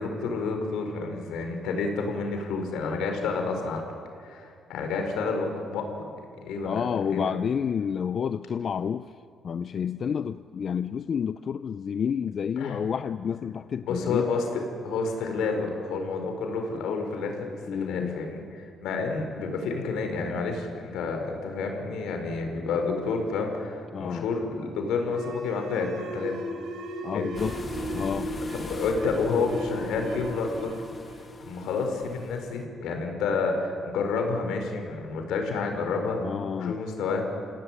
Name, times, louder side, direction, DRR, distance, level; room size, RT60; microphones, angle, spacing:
voice 1, 0.0-3.9 4.2-5.9 6.2-6.8 7.1-7.3 12.6-12.8 13.8-18.4 18.8-26.3 27.1-27.4 28.6-30.8 31.4-36.2 36.6-37.2, left 4 dB, 85° left, 4 dB, 4.7 m, -29 dB
voice 2, 6.6-9.1 9.4-14.3 17.7-18.2 23.9-24.3 27.0-28.4 36.2-36.8, left 7 dB, 55° left, 12 dB, 0.6 m, -30 dB
sound 1, 25.0-32.3, equal, 80° right, 5.2 m, -36 dB
sound 2, 27.3-32.6, left 4 dB, 35° left, 1.5 m, -41 dB
28.0 x 17.0 x 9.9 m, 2.3 s
cardioid pair, 90°, 0 cm